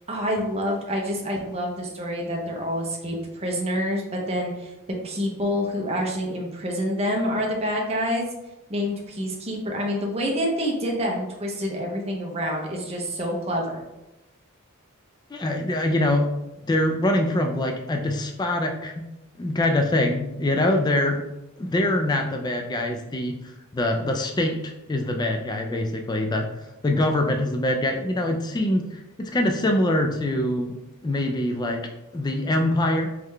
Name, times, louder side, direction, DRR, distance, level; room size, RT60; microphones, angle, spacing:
voice 1, 0.1-4.7 5.0-8.3 8.7-13.8, equal, 30° right, 0 dB, 0.7 m, -27 dB
voice 2, 15.3-16.3 16.7-19.1 19.4-21.2 21.6-23.4 23.7-26.5 26.8-30.7 31.0-31.8 32.1-33.1, left 1 dB, 20° left, 3 dB, 0.3 m, -24 dB
3.7 x 3.1 x 3.3 m, 0.95 s
head